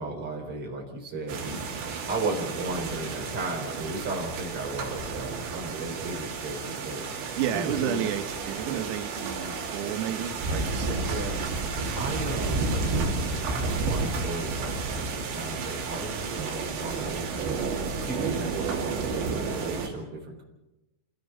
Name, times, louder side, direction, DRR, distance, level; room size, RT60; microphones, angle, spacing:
voice 1, 0.0-1.7 2.1-7.0 7.5-8.1 10.9-11.4 11.9-12.7 13.5-20.4, right 2 dB, 30° right, 0 dB, 4.4 m, -35 dB
sound 1, 1.3-19.9, right 4 dB, 60° right, 4.8 m, -31 dB
voice 2, 7.4-11.2, right 10 dB, 90° right, 7 dB, 4.0 m, -32 dB
27.5 x 18.5 x 5.6 m, 0.98 s
omnidirectional pair, 5.9 m